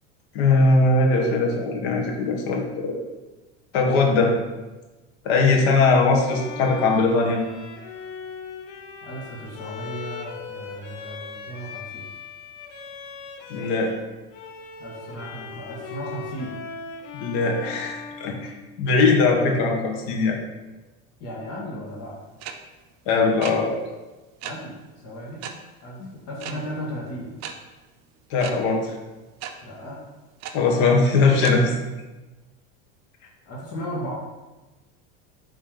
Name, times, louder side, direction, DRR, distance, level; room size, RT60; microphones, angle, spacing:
voice 1, 0.3-3.0 3.7-4.3 5.2-7.4 13.5-13.9 17.1-18.5 18.8-20.4 23.1-23.8 26.0-26.1 28.3-28.9 30.5-31.7, left 3 dB, 70° left, 1 dB, 1.4 m, -20 dB
Bowed string instrument, 6.2-14.0 14.3-19.1, left 5 dB, 85° left, 0.9 m, -39 dB
voice 2, 9.0-12.0 14.8-16.6 21.2-22.2 24.4-25.5 25.8-27.3 29.6-30.0 33.4-34.1, equal, 45° left, -4 dB, 1.7 m, -35 dB
sound 1, 22.4-22.5 23.4-23.5 24.4-24.5 25.4-25.5 26.4-26.5 27.4-27.5 28.4-28.5 29.4-29.5 30.4-30.5 31.4-31.5, right 10 dB, 50° right, 0.6 m, -33 dB
5.8 x 3.3 x 5.0 m, 1.2 s
supercardioid pair, 135°, 34 cm